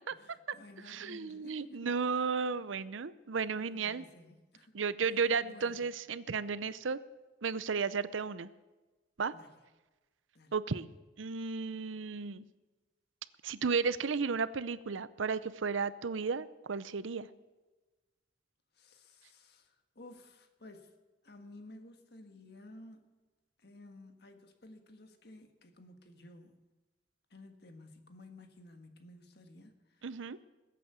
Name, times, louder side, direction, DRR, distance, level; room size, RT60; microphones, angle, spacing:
voice 1, 0.1-1.9 3.6-5.1 5.4-5.8 9.3-9.5 10.3-10.5 18.7-20.9 21.2-23.1 23.6-26.6 27.3-30.0, left 2 dB, 55° left, 6 dB, 1.7 m, -54 dB
voice 2, 0.9-4.0 4.7-7.0 7.4-8.5 9.2-9.3 10.5-10.9 11.2-12.4 13.4-17.3 30.0-30.4, right 5 dB, 85° right, 16 dB, 0.6 m, -34 dB
21.0 x 8.5 x 6.9 m, 1.2 s
head